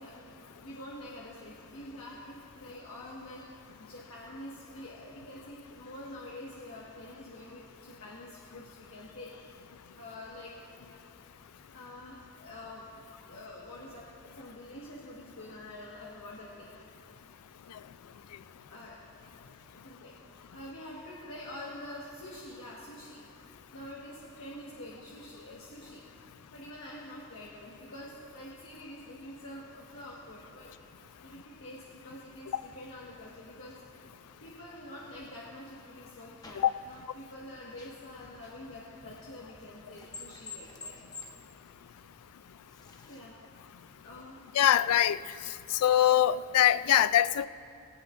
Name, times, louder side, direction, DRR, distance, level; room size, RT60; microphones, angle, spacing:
voice 1, 0.0-9.6 10.0-10.9 11.7-14.1 14.3-16.7 18.6-19.0 19.3-23.2 23.7-26.0 26.5-30.7 31.2-33.8 34.4-40.9 43.1-43.4 44.0-44.4, left 1 dB, 65° left, -5 dB, 1.5 m, -46 dB
sound 1, 32.7-43.2, left 3 dB, 15° left, 0.9 m, -53 dB
voice 2, 44.5-45.2 45.7-47.5, left 11 dB, 85° left, 16 dB, 0.3 m, -23 dB
18.0 x 17.0 x 2.5 m, 2.8 s
head